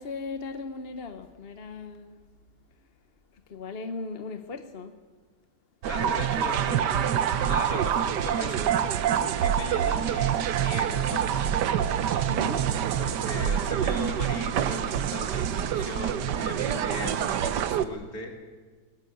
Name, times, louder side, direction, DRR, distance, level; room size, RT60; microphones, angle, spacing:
voice 1, 0.0-2.2 2.8-2.9 3.3-5.0 12.3-12.8, left 3 dB, 40° left, 1.1 m, -38 dB
sound 1, 5.8-17.8, right 9 dB, 75° right, 1.4 m, -26 dB
voice 2, 5.9-8.8 9.1-11.4 13.0-18.3, left 2 dB, 60° left, 3.3 m, -38 dB
20.5 x 18.5 x 8.6 m
omnidirectional pair, 1.8 m